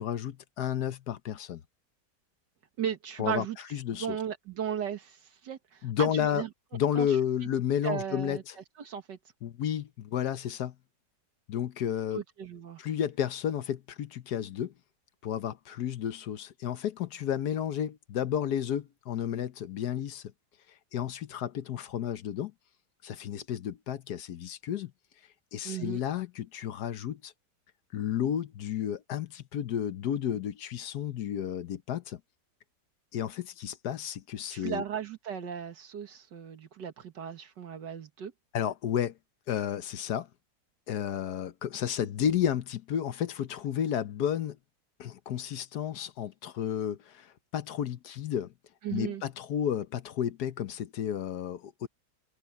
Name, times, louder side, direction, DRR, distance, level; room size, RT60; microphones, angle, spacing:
voice 1, 0.0-1.6 3.2-3.5 3.7-4.2 5.8-6.4 6.7-8.5 9.4-10.7 11.5-12.2 12.8-14.7 15.2-20.2 20.9-22.5 23.0-24.9 25.5-27.3 27.9-32.2 33.1-34.8 38.5-39.1 39.5-40.3 40.9-44.6 45.0-47.3 47.5-48.5 48.9-51.9, left 9 dB, 65° left, 1.3 m, -32 dB
voice 2, 2.8-3.6 3.9-6.5 6.9-7.1 7.8-8.4 8.8-9.2 12.1-12.8 25.6-26.0 34.5-38.3 48.8-49.2, right 8 dB, 75° right, 2.1 m, -36 dB
omnidirectional pair, 1.9 m